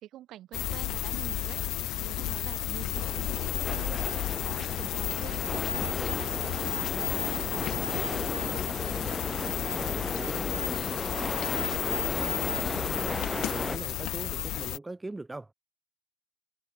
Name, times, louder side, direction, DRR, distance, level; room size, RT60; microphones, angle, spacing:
voice 1, 0.0-8.5 10.5-10.6, right 13 dB, 85° right, 3.7 m, -46 dB
sound 1, 0.5-14.8, left 15 dB, 90° left, 0.6 m, -32 dB
sound 2, 2.9-13.8, left 1 dB, 10° left, 0.6 m, -35 dB
sound 3, 3.4-8.6 10.0-12.5, left 5 dB, 40° left, 1.5 m, -47 dB
voice 2, 8.8-15.5, right 2 dB, 15° right, 2.5 m, -43 dB
cardioid pair, 90°, 0 cm